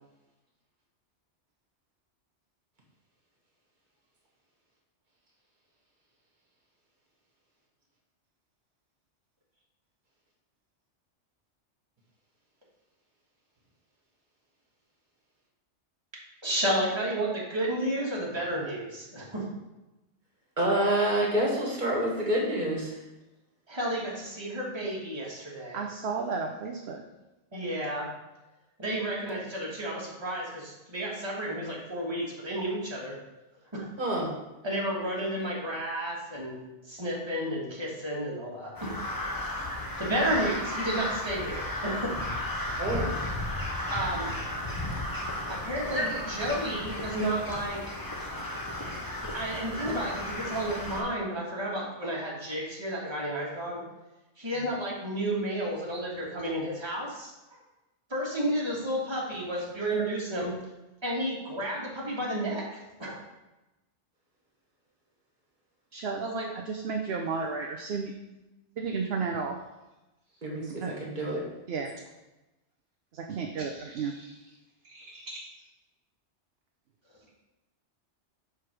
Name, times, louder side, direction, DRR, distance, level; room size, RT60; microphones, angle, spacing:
voice 1, 16.4-19.4 23.7-25.8 27.5-28.1 28.8-33.1 33.7-33.9 34.6-36.6 36.9-39.0 39.6-42.2 43.9-44.3 45.5-48.0 49.2-53.8 54.4-57.3 58.1-60.5 61.0-63.2 66.2-66.4, right 1 dB, 25° right, -4 dB, 1.6 m, -32 dB
voice 2, 20.6-23.0 34.0-34.3 39.8-40.0 42.8-43.2 45.9-46.2 70.4-71.4, right 1 dB, 40° right, -3 dB, 1.7 m, -28 dB
voice 3, 25.7-27.0 65.9-66.3 66.7-68.1 68.8-69.6 70.7-70.9 71.7-71.9 73.1-74.4 74.8-75.7, right 5 dB, 65° right, 2 dB, 0.8 m, -33 dB
Crow, 38.7-51.0, left 1 dB, 20° left, 0.8 m, -34 dB
4.9 x 4.6 x 6.0 m, 1.0 s
omnidirectional pair, 1.2 m